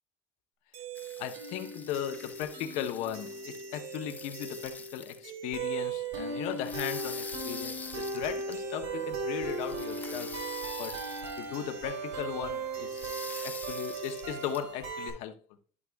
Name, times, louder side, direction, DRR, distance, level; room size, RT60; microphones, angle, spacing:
sound 1, 0.7-15.1, right 3 dB, 80° right, 2.5 m, -37 dB
sound 2, 1.0-5.2 6.4-8.7 9.4-11.5 12.2-12.3 12.8-14.6, left 5 dB, 15° left, 0.4 m, -45 dB
voice 1, 1.2-10.4 10.8-11.0 11.4-13.0 13.4-15.4, left 10 dB, 80° left, 0.8 m, -37 dB
11.0 x 6.0 x 2.2 m
cardioid pair, 160°, 11 cm